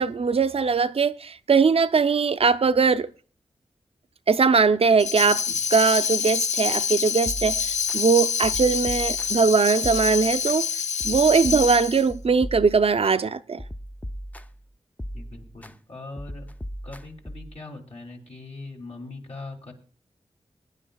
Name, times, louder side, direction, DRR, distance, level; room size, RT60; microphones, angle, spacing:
voice 1, 0.0-3.1 4.3-5.4 5.7-10.7 11.0-13.6, right 5 dB, 55° right, 0.5 m, -21 dB
Tambourine, 5.0-12.1, left 7 dB, 85° left, 0.4 m, -26 dB
sound 1, 7.3-8.0 8.4-9.5 9.8-10.6 11.0-13.2 13.6-14.6 15.0-15.7 16.2-17.6, equal, 15° left, 0.5 m, -38 dB
voice 2, 15.1-16.5 16.8-19.7, left 2 dB, 60° left, 2.7 m, -41 dB
21.5 x 10.0 x 2.3 m
cardioid pair, 60°, 12 cm